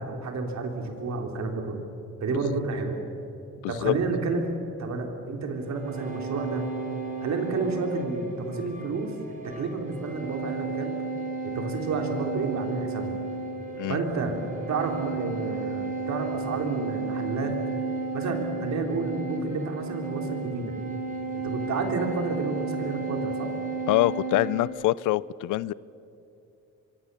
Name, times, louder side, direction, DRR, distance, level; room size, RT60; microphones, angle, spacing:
voice 1, 0.0-1.8 2.2-3.0 3.7-4.5 4.8-6.6 7.2-9.1 9.4-10.9 11.5-13.2 13.9-14.4 14.7-17.5 18.1-20.7 21.4-23.5, right 3 dB, 65° right, 3 dB, 3.8 m, -30 dB
voice 2, 3.6-3.9 13.8-14.0 23.9-25.7, left 17 dB, 90° left, 21 dB, 0.5 m, -25 dB
sound 1, 5.6-24.7, right 4 dB, 25° right, 4.9 m, -33 dB
24.5 x 24.0 x 7.0 m, 2.8 s
cardioid pair, 90°, 30 cm